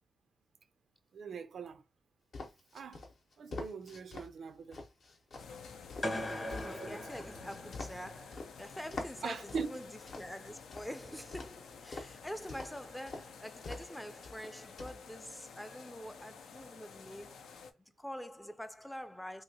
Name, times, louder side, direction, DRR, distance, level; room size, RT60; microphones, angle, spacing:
voice 1, 1.1-1.8 2.7-3.0 3.4-4.8 6.7-7.0 9.2-9.7, right 5 dB, 70° right, 0.4 m, -41 dB
sound 1, 2.3-4.3 4.7-8.5 8.9-10.9 11.3-12.2 12.5-12.8 13.1-13.2 13.6-14.0 14.2-15.0, left 3 dB, 60° left, 0.8 m, -45 dB
sound 2, 5.4-17.7, left 5 dB, 90° left, 0.4 m, -52 dB
sound 3, 6.0-8.1, left 1 dB, 30° left, 0.9 m, -39 dB
voice 2, 6.5-17.4 18.0-19.4, equal, 5° left, 0.4 m, -46 dB
2.8 x 2.7 x 2.8 m
cardioid pair, 80°, 0 cm